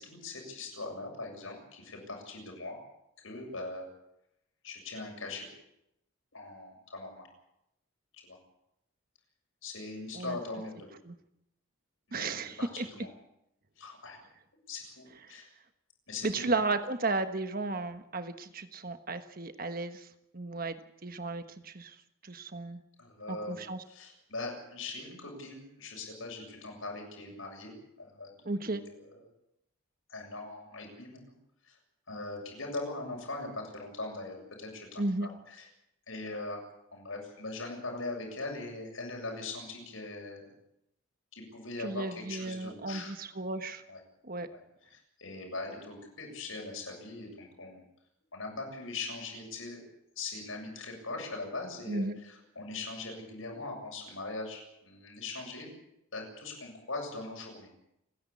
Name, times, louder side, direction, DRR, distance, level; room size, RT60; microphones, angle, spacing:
voice 1, 0.0-2.8 3.2-3.9 4.6-5.5 6.3-7.3 8.2-8.4 9.6-10.9 12.1-13.1 13.8-14.2 14.7-15.5 16.1-16.5 23.0-23.6 23.9-28.3 28.6-29.2 30.1-31.3 31.7-31.8 32.1-35.7 36.1-36.6 36.9-40.5 41.3-43.1 43.9-44.0 44.5-44.6 44.9-47.8 48.3-49.8 50.2-55.7 56.1-57.7, left 3 dB, 75° left, 1 dB, 7.5 m, -41 dB
voice 2, 12.1-12.9 15.2-15.3 16.2-20.1 20.3-20.8 21.0-21.9 22.2-22.8 23.3-23.8 28.4-28.8 35.0-35.3 41.8-43.8 44.2-44.5 51.9-52.2, right 3 dB, 45° right, 9 dB, 1.3 m, -34 dB
29.5 x 10.5 x 8.6 m, 0.82 s
head